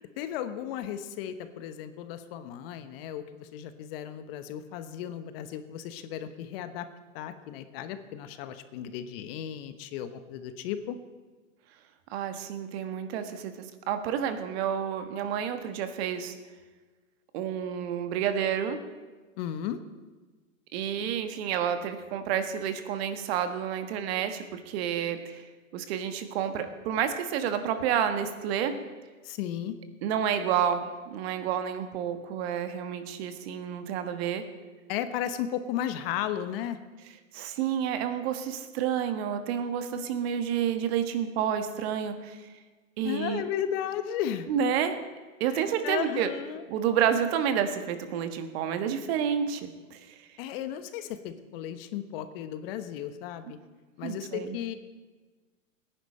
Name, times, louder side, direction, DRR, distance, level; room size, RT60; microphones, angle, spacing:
voice 1, 0.2-6.9 7.1-11.0 19.4-19.8 29.2-29.8 34.9-36.8 43.0-44.5 45.5-46.6 50.4-53.6 54.0-54.7, left 10 dB, 45° left, 10 dB, 1.0 m, -35 dB
voice 2, 12.1-16.4 17.3-18.8 20.7-25.4 25.7-28.7 30.0-34.4 37.3-42.4 43.0-43.4 44.5-45.0 45.4-46.3 46.7-50.1 54.0-54.5, right 8 dB, 50° right, 9 dB, 1.4 m, -29 dB
18.0 x 10.5 x 4.3 m, 1.3 s
hypercardioid pair, 130°, 40 cm